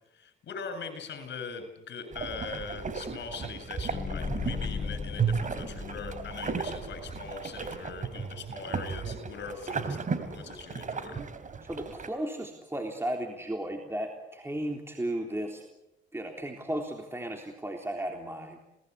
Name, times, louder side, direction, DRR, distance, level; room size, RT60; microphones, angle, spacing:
voice 1, 0.1-11.3, left 5 dB, 65° left, 8 dB, 7.6 m, -41 dB
sound 1, 2.1-12.1, right 5 dB, 40° right, 3.4 m, -35 dB
sound 2, 3.9-7.0, left 5 dB, 35° left, 1.2 m, -37 dB
voice 2, 11.6-15.6 16.1-18.6, right 1 dB, 10° right, 2 dB, 3.6 m, -35 dB
28.5 x 19.5 x 8.4 m, 0.92 s
cardioid pair, 90°, 20 cm